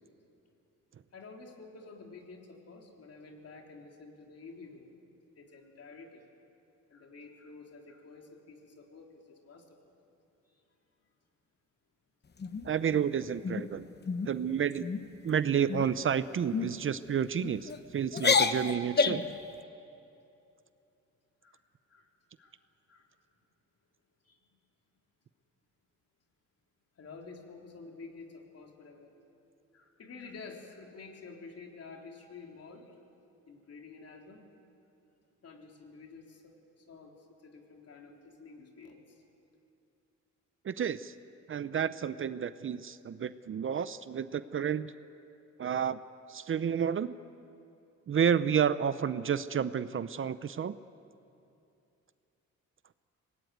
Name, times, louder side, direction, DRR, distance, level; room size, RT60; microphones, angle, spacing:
voice 1, 1.1-4.9 5.4-6.3 6.9-9.8 10.5-10.6 15.2-15.3 21.4-21.6 21.9-22.1 22.4-22.6 22.9-23.1 24.2-24.4 27.0-29.1 29.7-32.9 33.5-34.4 35.4-39.2, left 4 dB, 50° left, 1 dB, 3.8 m, -50 dB
sound 1, 12.4-13.0 13.4-13.7 14.1-14.3 14.7-15.1 15.7-16.0 16.5-16.7 17.4-17.8 18.1-19.3, left 5 dB, 35° left, 1.1 m, -29 dB
voice 2, 12.6-13.9 14.2-14.9 15.2-19.2 40.6-41.1 41.5-44.9 45.6-46.0 46.3-47.1 48.1-50.8, right 8 dB, 45° right, 14 dB, 0.6 m, -30 dB
24.0 x 19.5 x 9.4 m, 2.7 s
cardioid pair, 100°, 31 cm